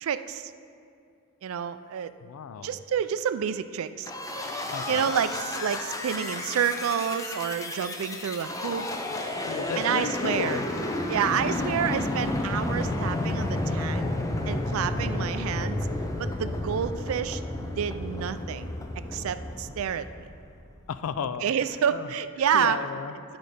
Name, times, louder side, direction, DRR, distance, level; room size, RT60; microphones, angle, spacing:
voice 1, 0.0-0.5 1.4-2.1 2.6-8.9 9.8-10.6 11.1-14.1 14.5-15.8 16.2-18.7 19.1-20.1 21.4-22.8, right 8 dB, 80° right, 12 dB, 0.3 m, -29 dB
voice 2, 2.2-2.8 4.7-5.1 9.5-10.7 20.9-21.5 21.9-22.1 22.5-23.2, left 6 dB, 85° left, 12 dB, 0.4 m, -34 dB
sound 1, 4.0-20.7, left 1 dB, 15° left, 0.4 m, -31 dB
11.0 x 4.0 x 5.0 m, 2.4 s
head